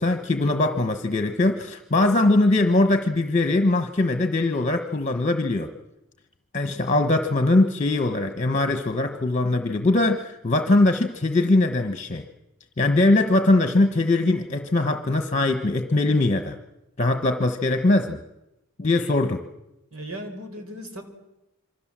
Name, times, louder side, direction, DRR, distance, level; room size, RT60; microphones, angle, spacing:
voice 1, 0.0-5.7 6.5-12.2 12.8-16.6 17.0-18.2 18.8-19.4, left 2 dB, 35° left, 7 dB, 1.2 m, -21 dB
voice 2, 19.9-21.0, equal, 70° right, 6 dB, 4.6 m, -36 dB
27.0 x 24.0 x 7.5 m, 0.90 s
head